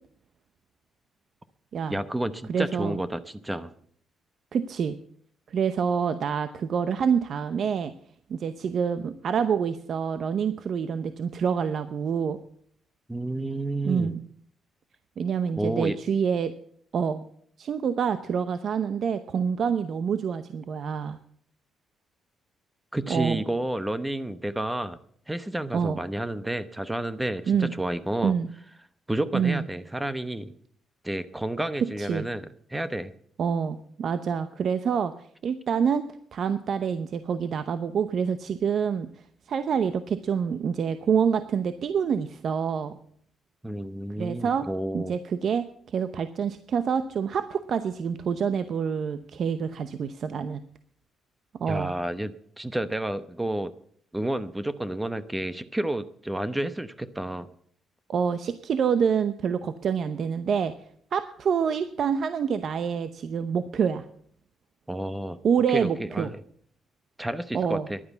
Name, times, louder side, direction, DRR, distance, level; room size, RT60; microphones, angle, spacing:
voice 1, 1.9-3.7 13.1-14.1 15.6-16.0 22.9-25.0 25.3-28.3 29.1-30.5 31.0-33.1 43.6-45.1 51.7-53.7 54.1-57.5 64.9-65.4 65.7-66.4 67.2-68.0, right 1 dB, 10° right, 13 dB, 0.9 m, -30 dB
voice 2, 2.5-3.0 4.5-5.0 5.5-7.9 8.3-12.4 13.8-14.2 15.2-16.5 16.9-17.3 17.6-21.2 23.1-23.4 25.7-26.0 27.5-27.7 28.2-28.5 29.3-29.6 32.0-32.3 33.4-35.1 35.4-36.1 36.3-39.1 39.5-42.9 44.2-44.7 44.9-45.7 45.9-50.6 51.6-51.9 58.1-60.7 61.1-64.0 65.4-66.3 67.5-67.9, right 7 dB, 60° right, 11 dB, 0.8 m, -27 dB
11.5 x 9.6 x 8.2 m, 0.62 s
cardioid pair, 90°, 0 cm